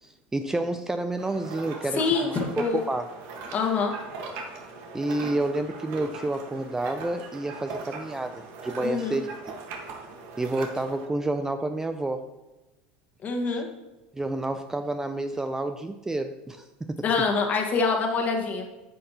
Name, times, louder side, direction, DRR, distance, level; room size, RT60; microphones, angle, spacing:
voice 1, 0.0-2.4 2.7-3.1 4.9-9.3 10.4-12.3 14.1-17.0, right 2 dB, 10° right, 9 dB, 0.4 m, -29 dB
sound 1, 1.2-11.1, right 4 dB, 60° right, 1.4 m, -40 dB
voice 2, 1.9-2.8 3.5-3.9 8.8-9.2 13.2-13.7 17.0-18.7, left 4 dB, 40° left, 2 dB, 1.5 m, -25 dB
9.7 x 6.5 x 2.9 m, 1.1 s
hypercardioid pair, 95°, 5 cm